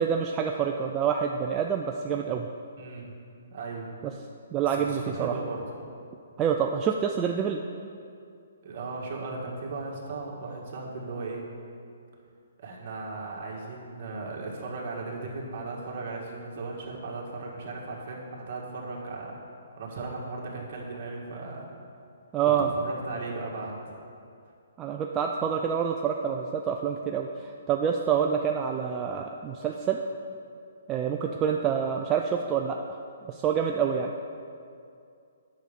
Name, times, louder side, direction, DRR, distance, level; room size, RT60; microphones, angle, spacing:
voice 1, 0.0-2.5 4.0-4.1 4.5-5.3 6.4-7.6 22.3-22.7 24.8-30.0 30.9-32.8 33.3-34.1, right 7 dB, 15° right, 1 dB, 0.3 m, -27 dB
voice 2, 2.8-3.2 3.5-3.9 4.7-5.6 8.6-11.5 12.6-19.4 19.8-21.7 22.6-23.8, right 3 dB, 45° right, -2 dB, 1.8 m, -37 dB
9.1 x 6.4 x 5.1 m, 2.4 s
hypercardioid pair, 160°, 0 cm